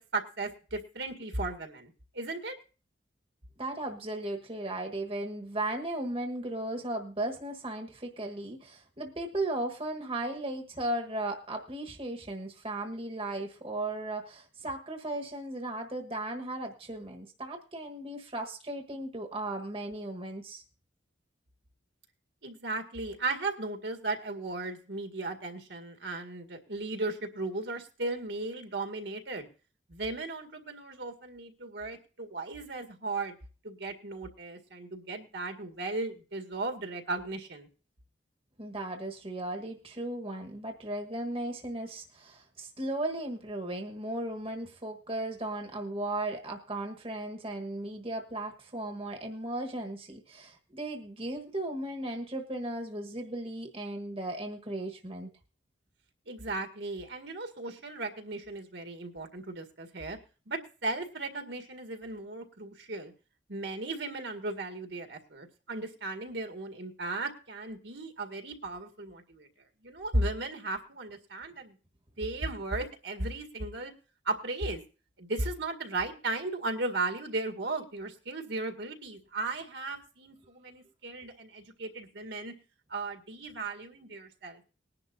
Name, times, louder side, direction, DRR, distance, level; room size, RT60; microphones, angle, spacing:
voice 1, 0.0-2.6 22.4-29.5 29.9-33.4 33.6-37.7 56.3-60.2 60.5-63.1 63.5-69.5 69.8-71.7 72.2-73.9 74.3-74.8 75.2-82.5 82.9-84.6, right 2 dB, 65° right, 5 dB, 1.9 m, -36 dB
voice 2, 3.6-20.6 38.6-55.3, right 1 dB, 30° right, 3 dB, 1.4 m, -36 dB
20.0 x 11.0 x 2.7 m, 0.36 s
head